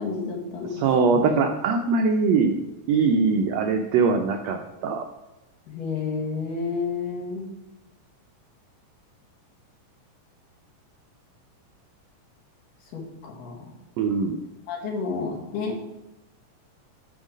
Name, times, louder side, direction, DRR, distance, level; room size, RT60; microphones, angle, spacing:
voice 1, 0.0-0.8 1.1-1.4 5.7-7.5 12.9-13.7 14.7-15.9, left 4 dB, 85° left, -1 dB, 3.5 m, -30 dB
voice 2, 0.7-2.6 2.9-5.0 14.0-14.4, right 4 dB, 85° right, 5 dB, 1.5 m, -22 dB
11.0 x 4.5 x 5.1 m, 0.99 s
omnidirectional pair, 3.8 m